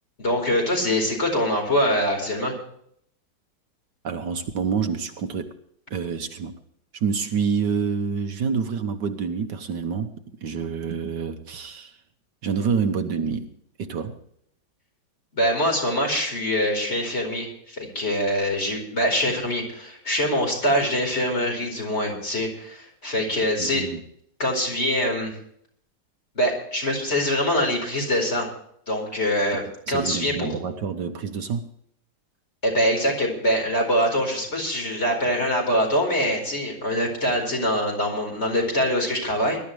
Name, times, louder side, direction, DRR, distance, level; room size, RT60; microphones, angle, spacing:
voice 1, 0.2-2.5 15.3-23.8 24.4-25.3 26.3-28.5 28.9-30.5 32.6-39.6, equal, 35° left, 4.9 m, -24 dB
voice 2, 4.0-5.6 5.9-6.6 6.9-12.0 12.4-13.5 13.8-14.2 23.6-24.0 29.5-31.7, right 6 dB, 70° right, 1.6 m, -27 dB
21.0 x 12.5 x 3.4 m
omnidirectional pair, 2.0 m